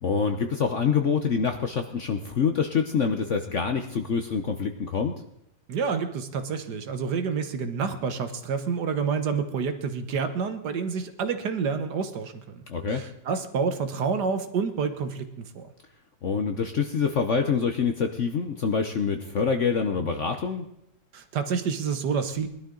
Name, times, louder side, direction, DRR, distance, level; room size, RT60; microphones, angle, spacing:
voice 1, 0.0-5.1 12.7-13.0 16.2-20.7, left 6 dB, 55° left, 6 dB, 0.9 m, -26 dB
voice 2, 5.7-12.6 12.9-15.7 21.1-22.5, right 5 dB, 65° right, 9 dB, 1.5 m, -28 dB
20.0 x 12.0 x 3.8 m, 0.75 s
omnidirectional pair, 2.1 m